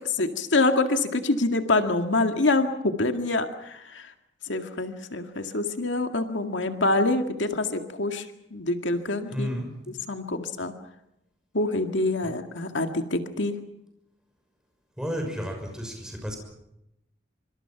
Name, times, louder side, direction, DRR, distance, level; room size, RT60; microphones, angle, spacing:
voice 1, 0.2-4.1 4.5-8.3 8.5-9.5 10.1-10.7 11.5-13.6, left 2 dB, 85° left, 6 dB, 2.0 m, -26 dB
voice 2, 9.3-9.7 15.0-16.4, equal, 5° right, 3 dB, 6.2 m, -32 dB
26.0 x 25.5 x 5.9 m, 0.85 s
head